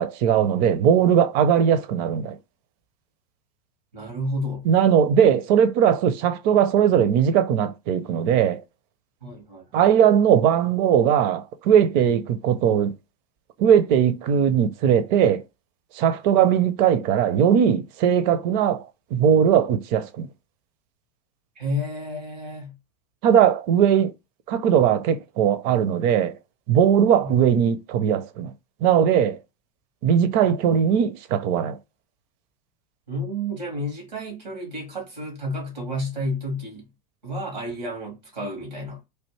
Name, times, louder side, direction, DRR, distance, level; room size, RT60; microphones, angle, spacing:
voice 1, 0.0-2.4 4.6-8.6 9.7-12.9 13.6-15.4 15.9-18.9 19.1-20.3 23.2-24.1 24.5-26.3 26.7-28.5 28.8-29.4 30.0-31.8, right 8 dB, 45° right, 0.6 m, -19 dB
voice 2, 3.9-4.6 9.2-9.8 21.6-22.7 27.2-27.4 33.1-36.9 37.2-39.0, equal, 90° right, 1.8 m, -31 dB
3.3 x 2.5 x 3.1 m
hypercardioid pair, 95°, 21 cm